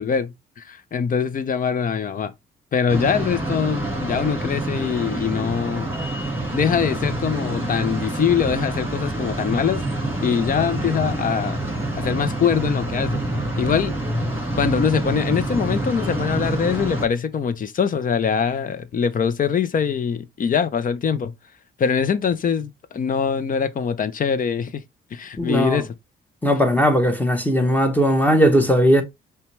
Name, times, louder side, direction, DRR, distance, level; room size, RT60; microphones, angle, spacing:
voice 1, 0.0-2.3 2.7-5.9 6.5-9.8 10.2-11.6 12.0-13.2 13.6-14.0 14.6-21.3 21.8-24.8 25.1-25.9, left 7 dB, 45° left, 0.6 m, -23 dB
sound 1, 2.9-17.1, right 1 dB, 10° right, 1.9 m, -27 dB
voice 2, 25.4-25.8 26.4-29.0, equal, 10° left, 1.0 m, -18 dB
5.6 x 2.3 x 3.2 m
cardioid pair, 90°, 20 cm